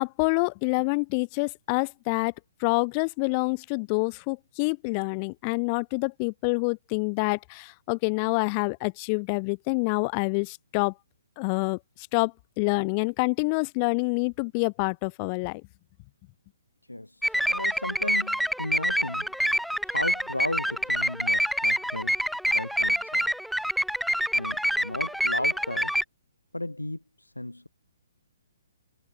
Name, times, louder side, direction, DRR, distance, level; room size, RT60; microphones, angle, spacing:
voice 1, 0.0-2.3 2.6-10.9 11.4-15.6, left 34 dB, 30° left, 2.1 m, -27 dB
voice 2, 16.9-19.3 19.8-22.2 22.4-23.3 24.3-25.9 26.5-27.7, left 1 dB, 80° left, 4.3 m, -35 dB
sound 1, 17.2-26.0, equal, ahead, 0.4 m, -26 dB
figure-of-eight pair, 130°, 0 cm